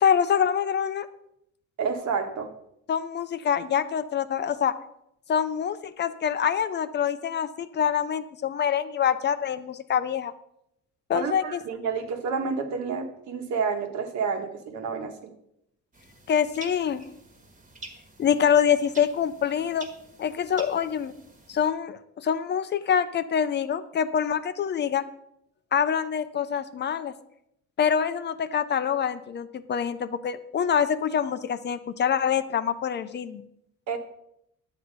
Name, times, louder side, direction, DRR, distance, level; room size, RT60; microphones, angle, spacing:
voice 1, 0.0-1.1 2.9-4.7 5.3-10.3 11.1-11.6 16.3-17.0 18.2-19.9 20.2-21.1 21.5-25.0 25.7-27.1 27.8-33.4, left 8 dB, 35° left, 12 dB, 0.5 m, -25 dB
voice 2, 1.8-2.5 11.1-15.3 33.9-34.0, right 5 dB, 70° right, 5 dB, 1.5 m, -29 dB
sound 1, 15.9-21.7, right 3 dB, 25° right, 1.5 m, -48 dB
11.0 x 7.9 x 5.2 m, 0.79 s
cardioid pair, 165°, 29 cm